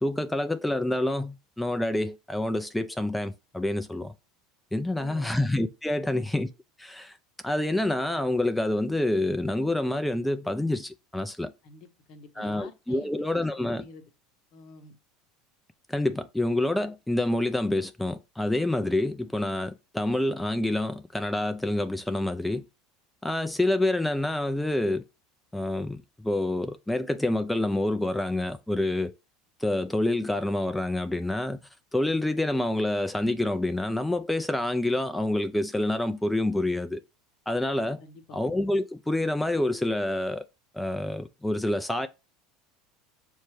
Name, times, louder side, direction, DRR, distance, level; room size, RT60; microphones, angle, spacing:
voice 1, 0.0-4.1 4.7-6.5 6.8-7.2 7.4-11.5 12.4-13.8 15.9-22.6 23.2-25.0 25.5-29.1 29.6-31.6 31.9-37.0 37.5-38.0 38.3-40.4 40.7-42.1, left 1 dB, 5° left, 0.4 m, -27 dB
voice 2, 4.9-5.4 6.0-6.2 11.6-14.0 14.5-15.0 38.0-38.4, left 4 dB, 60° left, 0.9 m, -48 dB
6.3 x 2.2 x 3.1 m
hypercardioid pair, 85°, 0 cm